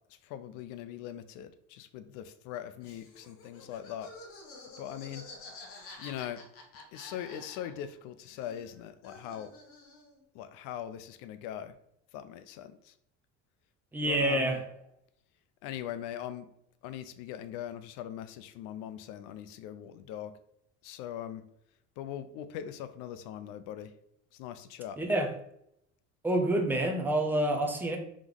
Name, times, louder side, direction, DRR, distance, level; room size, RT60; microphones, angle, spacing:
voice 1, 0.1-4.1 4.8-5.3 6.0-6.4 6.9-9.5 10.3-11.8 12.1-13.0 14.0-14.6 15.6-16.5 16.8-20.3 20.8-21.4 22.0-23.9 24.3-25.0, left 10 dB, 80° left, 11 dB, 0.5 m, -41 dB
Laughter, 2.8-8.0 8.2-10.2, left 3 dB, 45° left, 0.9 m, -50 dB
voice 2, 13.9-14.6 25.0-25.3 26.2-28.0, right 1 dB, 5° right, 3 dB, 0.4 m, -27 dB
3.7 x 3.0 x 3.7 m, 0.74 s
cardioid pair, 160°, 31 cm